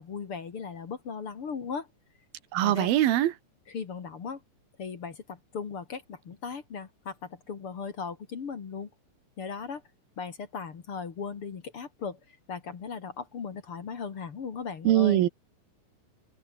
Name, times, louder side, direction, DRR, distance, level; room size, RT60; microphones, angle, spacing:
voice 1, 0.0-1.9 2.6-2.9 3.7-4.4 4.8-8.9 9.4-9.8 10.2-15.3, left 5 dB, 45° left, 2.6 m, -37 dB
voice 2, 2.5-3.3 14.8-15.3, right 13 dB, 90° right, 3.2 m, -22 dB
omnidirectional pair, 4.1 m